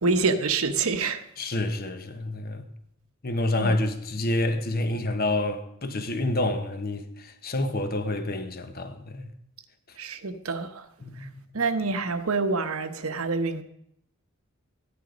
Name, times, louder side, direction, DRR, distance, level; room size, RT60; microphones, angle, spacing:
voice 1, 0.0-1.2 3.6-3.7 10.0-10.9 11.2-11.3 11.5-13.6, right 4 dB, 80° right, 1.0 m, -26 dB
voice 2, 1.4-2.6 3.2-9.3 11.0-11.4, left 1 dB, 45° left, 1.3 m, -28 dB
14.5 x 10.5 x 5.2 m
head